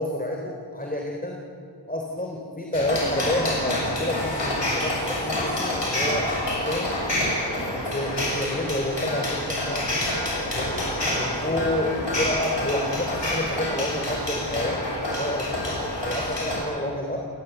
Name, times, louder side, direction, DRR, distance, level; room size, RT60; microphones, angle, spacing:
voice 1, 0.0-1.4 1.9-6.9 7.7-10.0 10.5-10.9 11.2-17.2, left 1 dB, 20° left, 0 dB, 3.5 m, -29 dB
sound 1, 2.7-16.6, left 1 dB, 85° left, 7.0 m, -27 dB
28.0 x 18.5 x 9.2 m, 2.6 s
wide cardioid pair, 50°, 41 cm